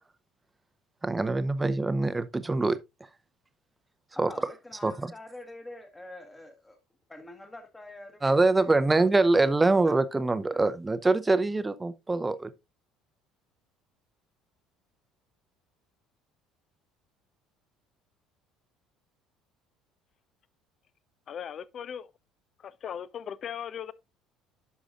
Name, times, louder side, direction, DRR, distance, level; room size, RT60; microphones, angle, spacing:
voice 1, 1.0-2.8 4.2-4.3 4.8-5.1 8.2-12.5, right 3 dB, 15° right, 0.7 m, -24 dB
voice 2, 4.3-6.8 7.1-8.2 9.3-9.8, left 2 dB, 10° left, 1.2 m, -46 dB
voice 3, 21.3-22.1 22.6-23.9, left 8 dB, 40° left, 0.5 m, -38 dB
11.0 x 6.1 x 2.4 m
figure-of-eight pair, 55°, 0 cm